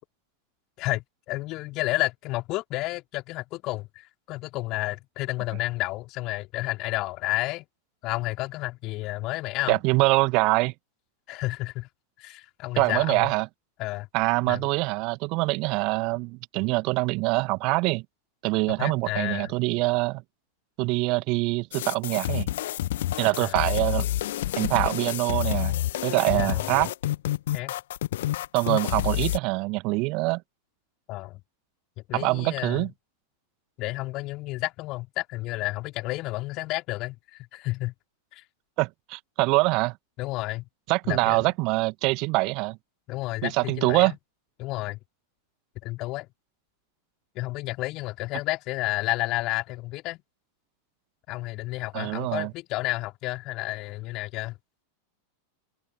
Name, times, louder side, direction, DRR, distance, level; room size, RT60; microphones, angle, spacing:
voice 1, 0.8-7.7 8.0-9.8 11.3-11.9 12.2-13.3 13.8-14.1 14.5-14.6 18.8-19.5 23.4-23.7 26.3-26.9 27.5-27.7 31.1-31.4 32.1-32.9 33.8-37.9 38.3-38.4 40.2-40.7 41.1-41.4 43.1-44.2 44.6-45.0 45.8-46.3 47.4-50.2 51.3-54.5, left 20 dB, 40° left, 3.7 m, -31 dB
voice 2, 9.7-10.7 12.8-13.5 14.1-18.0 18.4-20.2 20.8-22.5 23.2-24.1 24.6-25.8 26.0-26.9 28.5-30.4 32.1-32.9 38.8-40.0 40.9-42.8 43.4-44.1 51.9-52.5, right 25 dB, 40° right, 1.6 m, -24 dB
sound 1, 21.7-29.4, left 14 dB, 55° left, 1.1 m, -28 dB
figure-of-eight pair, 90°, 0 cm